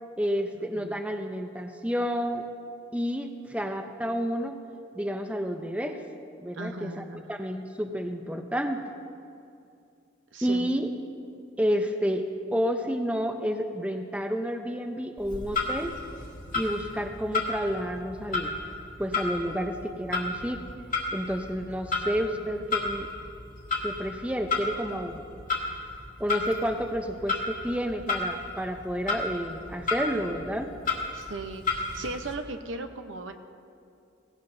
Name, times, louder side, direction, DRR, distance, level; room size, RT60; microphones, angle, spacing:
voice 1, 0.2-2.5 2.9-4.6 5.0-6.0 6.4-8.8 10.4-10.9 11.6-15.9 16.5-18.6 19.0-20.6 21.1-23.1 23.8-25.2 26.2-30.7, equal, 5° right, 5 dB, 0.6 m, -30 dB
voice 2, 6.5-7.3 10.3-10.7 31.1-33.3, right 2 dB, 85° right, 7 dB, 0.8 m, -37 dB
Clock, 15.2-32.3, left 3 dB, 45° left, 1.6 m, -33 dB
17.5 x 17.0 x 2.7 m, 2.5 s
head